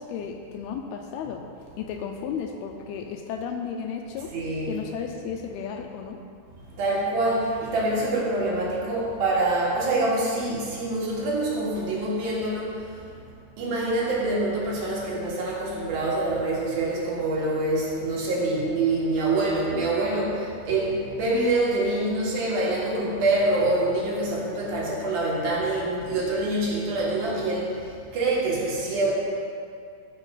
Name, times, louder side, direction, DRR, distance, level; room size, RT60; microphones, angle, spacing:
voice 1, 0.0-1.4 1.8-4.3 4.7-6.2, left 7 dB, 85° left, 4 dB, 2.4 m, -34 dB
voice 2, 4.3-4.7 6.7-13.2 13.6-29.2, right 2 dB, 65° right, -5 dB, 3.6 m, -25 dB
14.0 x 5.9 x 5.6 m, 2.3 s
omnidirectional pair, 4.7 m